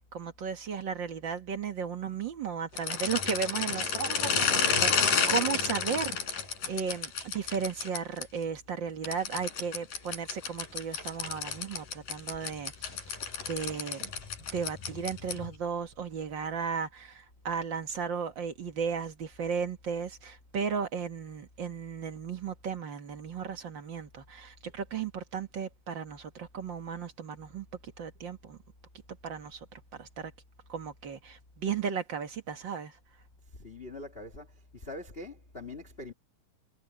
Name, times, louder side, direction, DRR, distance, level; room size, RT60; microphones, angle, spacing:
voice 1, 0.1-6.2 6.7-13.0 13.5-14.1 14.5-28.6 29.2-30.3 30.7-33.0, right 6 dB, 50° right, 1.5 m, -35 dB
sound 1, 2.7-8.2 9.0-15.5, left 6 dB, 75° left, 5.2 m, -31 dB
voice 2, 33.6-34.5 34.7-36.1, left 2 dB, 20° left, 1.6 m, -43 dB
omnidirectional pair, 3.9 m